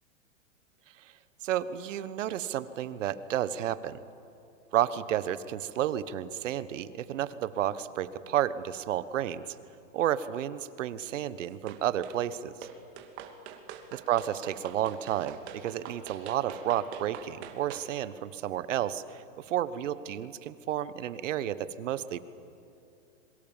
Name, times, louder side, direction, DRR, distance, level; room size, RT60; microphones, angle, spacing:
voice 1, 1.4-4.0 4.7-9.4 9.9-12.5 13.9-22.2, right 11 dB, 70° right, 15 dB, 1.3 m, -31 dB
sound 1, 11.7-12.2 12.6-17.9, right 8 dB, 55° right, 2.9 m, -44 dB
27.0 x 23.5 x 7.4 m, 2.7 s
hypercardioid pair, 135°, 39 cm